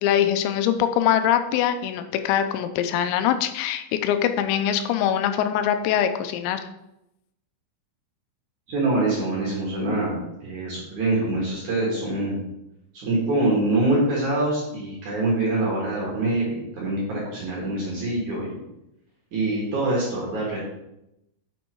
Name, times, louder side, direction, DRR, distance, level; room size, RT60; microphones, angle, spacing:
voice 1, 0.0-6.7, left 10 dB, 85° left, 9 dB, 3.4 m, -23 dB
voice 2, 8.7-12.4 12.9-18.6 19.3-20.6, right 2 dB, 50° right, -5 dB, 2.6 m, -25 dB
8.2 x 6.4 x 4.6 m, 0.86 s
omnidirectional pair, 5.9 m